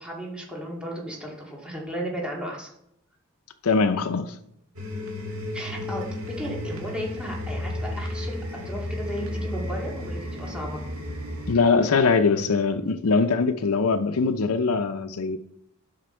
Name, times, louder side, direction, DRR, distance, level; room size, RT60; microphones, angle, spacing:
voice 1, 0.0-2.7 5.5-6.0 6.4-8.4 8.6-10.8, equal, 5° right, 2.1 m, -34 dB
voice 2, 3.6-4.4 11.5-15.4, left 4 dB, 80° left, 0.6 m, -22 dB
sound 1, 4.8-11.5, left 1 dB, 70° right, 1.9 m, -33 dB
11.5 x 6.0 x 4.4 m
head